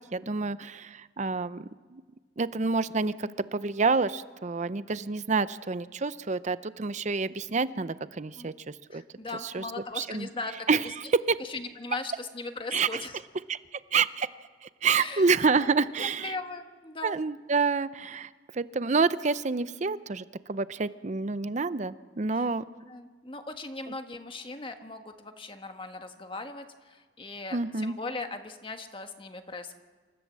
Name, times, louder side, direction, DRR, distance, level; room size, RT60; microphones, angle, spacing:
voice 1, 0.1-2.0 2.4-9.0 9.4-9.6 10.0-10.3 10.7-11.4 12.7-13.0 13.5-14.3 14.6-16.3 17.0-22.6 27.5-28.0, right 4 dB, 40° right, 15 dB, 0.6 m, -28 dB
voice 2, 8.9-10.7 11.4-13.1 15.0-15.3 15.6-15.7 16.0-17.2 22.3-22.5 22.9-29.7, left 3 dB, 30° left, 6 dB, 1.4 m, -39 dB
27.5 x 14.5 x 7.5 m, 1.4 s
head